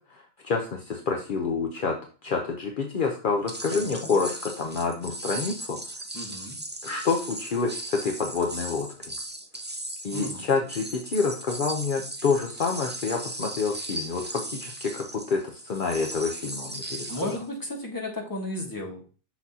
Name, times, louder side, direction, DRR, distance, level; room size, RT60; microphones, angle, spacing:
voice 1, 0.1-1.9 2.2-5.8 6.8-8.9 10.0-17.4, left 4 dB, 55° left, 2 dB, 0.9 m, -28 dB
sound 1, 3.5-17.5, right 1 dB, 15° right, 0.5 m, -37 dB
voice 2, 3.7-4.1 6.1-6.6 10.1-10.4 17.1-19.0, left 1 dB, 20° left, 0 dB, 1.5 m, -34 dB
6.0 x 5.9 x 2.8 m, 0.38 s
omnidirectional pair, 1.0 m